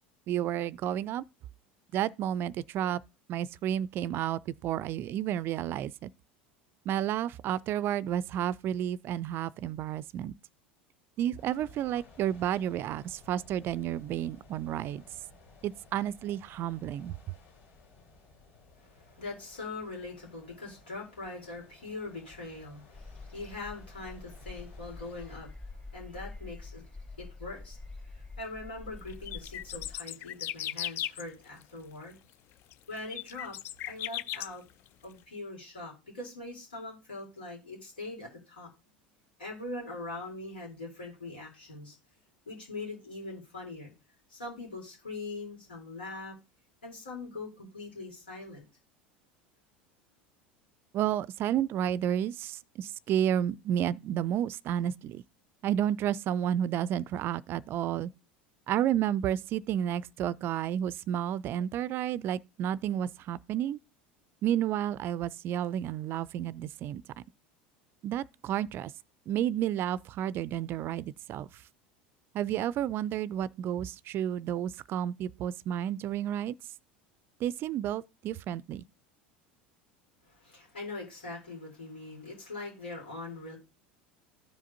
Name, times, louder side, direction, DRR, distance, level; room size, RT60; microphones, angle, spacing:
voice 1, 0.3-1.2 1.9-3.0 3.3-6.1 6.9-10.3 11.2-15.0 15.6-17.2 50.9-55.2 55.6-58.1 58.7-63.8 64.4-67.0 68.0-68.9 69.3-71.6 72.3-76.5 77.4-78.8, right 10 dB, 45° right, 0.3 m, -31 dB
sound 1, 11.4-25.4, left 3 dB, 65° left, 3.4 m, -57 dB
voice 2, 18.8-26.8 27.2-27.8 28.1-32.2 32.9-33.6 33.9-34.6 35.0-38.7 39.4-42.0 42.5-43.9 44.3-46.4 46.8-48.6 80.3-83.6, left 2 dB, 85° left, 3.5 m, -42 dB
sound 2, 22.9-30.0, left 3 dB, 25° left, 2.5 m, -46 dB
sound 3, 29.1-31.2 31.6-31.7 32.7-34.5 34.9-35.0, left 12 dB, 50° left, 0.4 m, -36 dB
14.0 x 4.9 x 2.7 m
hypercardioid pair, 80°, 5 cm